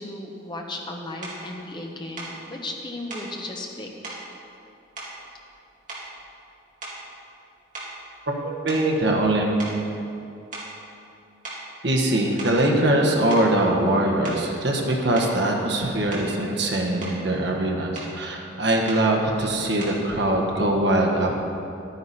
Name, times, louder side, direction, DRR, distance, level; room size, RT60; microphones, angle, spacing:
voice 1, 0.0-4.2, left 2 dB, 20° left, 1 dB, 1.0 m, -35 dB
sound 1, 1.2-1.4 2.2-2.4 3.1-3.3 4.0-4.3 5.0-5.6 5.9-6.3 6.8-7.1 7.7-9.3 9.6-9.8 10.5-10.8 11.4-11.7 12.2-12.7 13.3-13.5 14.2-14.5 15.1-15.4 16.1-16.4 16.8-17.2 17.9-18.2 18.9-19.1 19.8-20.1, right 2 dB, 40° right, 2.4 m, -38 dB
voice 2, 8.3-9.6 11.8-21.3, right 1 dB, 55° right, 0 dB, 1.4 m, -22 dB
11.5 x 9.6 x 4.2 m, 2.7 s
head